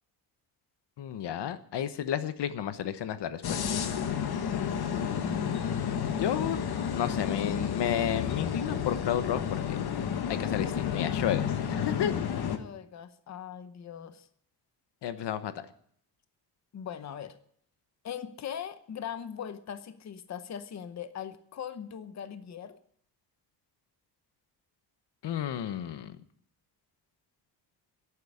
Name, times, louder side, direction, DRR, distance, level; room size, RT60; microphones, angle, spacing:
voice 1, 1.0-3.6 6.1-6.6 6.9-9.9 10.3-12.3 15.0-15.7 25.2-26.2, left 10 dB, 85° left, 12 dB, 1.1 m, -32 dB
sound 1, 3.4-12.6, left 8 dB, 65° left, 1.3 m, -31 dB
voice 2, 12.6-14.3 16.7-17.4 18.0-22.8, left 9 dB, 40° left, 11 dB, 0.8 m, -40 dB
11.5 x 8.7 x 9.7 m, 0.65 s
wide cardioid pair, 175°, 40 cm